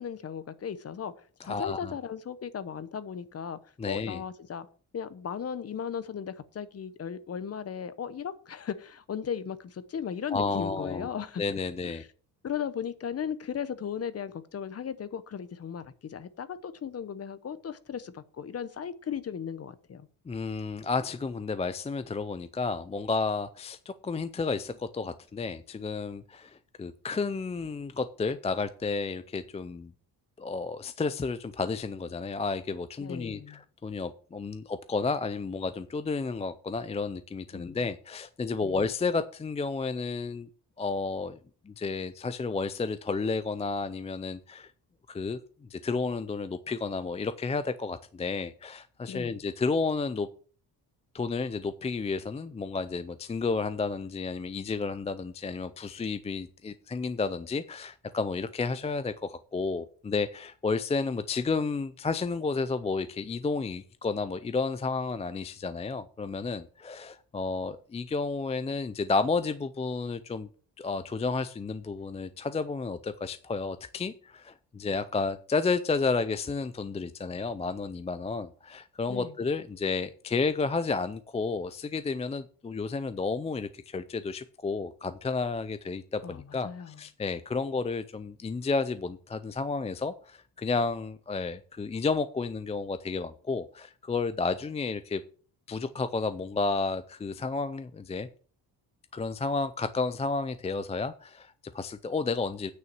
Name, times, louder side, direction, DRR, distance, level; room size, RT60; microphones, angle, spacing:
voice 1, 0.0-3.6 3.9-4.7 4.9-11.4 11.8-12.1 12.4-20.1 33.0-33.6 37.5-37.8 38.6-38.7 49.1-49.3 79.1-79.3 86.2-87.0, left 7 dB, 35° left, 0.9 m, -36 dB
voice 2, 1.4-1.9 3.8-4.2 10.3-11.1 11.4-12.0 20.3-29.9 30.4-40.5 40.8-41.4 41.7-44.7 45.1-45.4 45.7-50.3 51.1-70.5 70.8-95.2 95.7-98.3 99.1-102.7, left 4 dB, 15° left, 0.4 m, -31 dB
9.4 x 5.6 x 7.3 m
cardioid pair, 145°, 40 cm